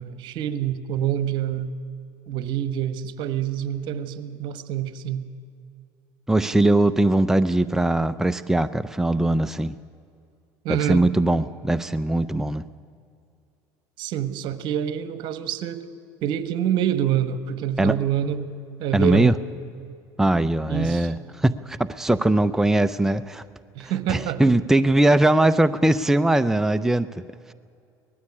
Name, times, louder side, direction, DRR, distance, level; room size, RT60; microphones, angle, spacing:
voice 1, 0.0-1.7 2.3-5.2 10.6-11.1 14.0-15.8 16.2-18.4 18.8-19.3 20.7-21.1 23.7-24.6, right 10 dB, 60° right, 13 dB, 1.4 m, -26 dB
voice 2, 6.3-9.8 10.7-12.6 17.8-18.0 18.9-19.3 20.2-23.4 24.1-27.1, right 1 dB, 5° right, 11 dB, 0.6 m, -20 dB
19.5 x 14.5 x 9.8 m, 2.5 s
supercardioid pair, 90°, 9 cm